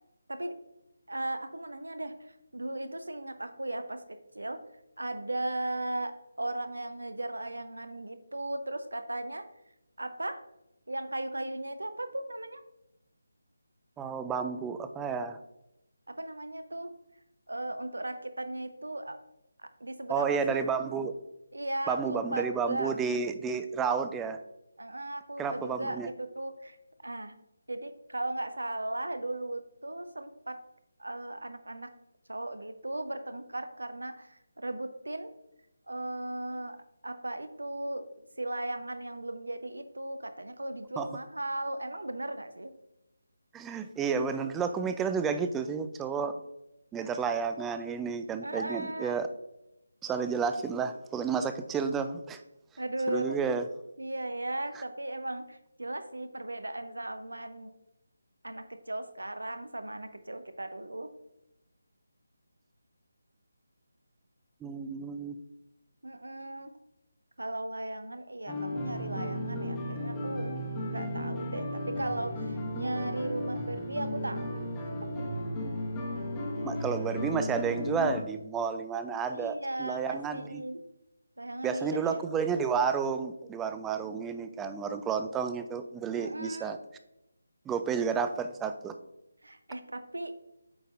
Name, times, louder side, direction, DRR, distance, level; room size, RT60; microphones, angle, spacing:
voice 1, 1.1-4.0 4.3-4.6 5.0-9.5 10.0-10.4 10.9-12.6 16.1-16.9 17.5-19.2 19.6-20.6 21.5-22.9 24.8-26.8 27.0-27.3 27.7-30.6 31.0-31.9 32.3-35.3 35.9-36.8 37.0-42.7 48.4-49.2 52.8-53.4 54.0-57.7 58.4-61.1 66.0-66.7 67.4-70.5 70.8-74.9 79.3-80.8 81.4-82.2 86.1-86.8 89.4-90.3, right 1 dB, 75° right, 10 dB, 0.7 m, -37 dB
voice 2, 14.0-15.4 20.1-21.2 21.9-24.4 25.4-26.1 41.0-41.1 43.5-46.4 46.9-49.3 50.0-52.4 53.1-53.6 64.6-65.4 75.6-75.7 76.6-80.6 81.6-86.8 87.7-88.9, right 6 dB, 10° right, 9 dB, 0.3 m, -31 dB
sound 1, 68.5-78.2, left 1 dB, 15° left, 1.0 m, -34 dB
8.3 x 5.2 x 2.5 m, 0.90 s
figure-of-eight pair, 155°, 0 cm